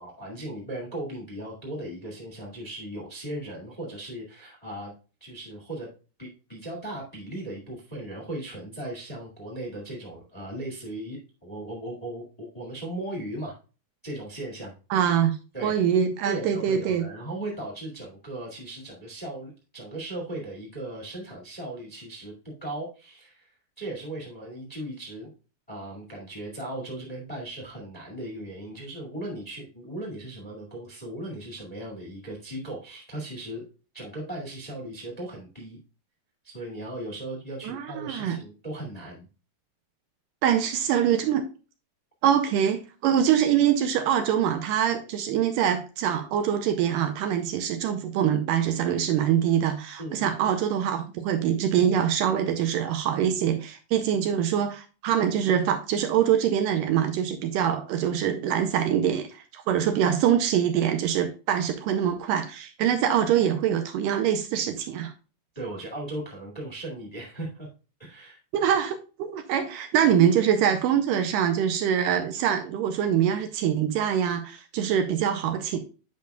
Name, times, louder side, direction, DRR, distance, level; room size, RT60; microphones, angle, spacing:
voice 1, 0.0-4.9 5.2-5.9 6.2-13.5 14.0-14.7 15.5-15.7 16.2-23.5 23.8-25.3 25.7-33.7 33.9-35.8 36.4-39.3 50.0-50.4 65.5-67.7 68.0-68.4, right 1 dB, 20° left, 1.2 m, -37 dB
voice 2, 14.9-15.4 15.6-17.0 37.6-38.4 40.4-41.4 42.2-65.1 68.5-75.8, right 9 dB, 80° right, 2.1 m, -24 dB
9.3 x 5.2 x 2.3 m
omnidirectional pair, 4.2 m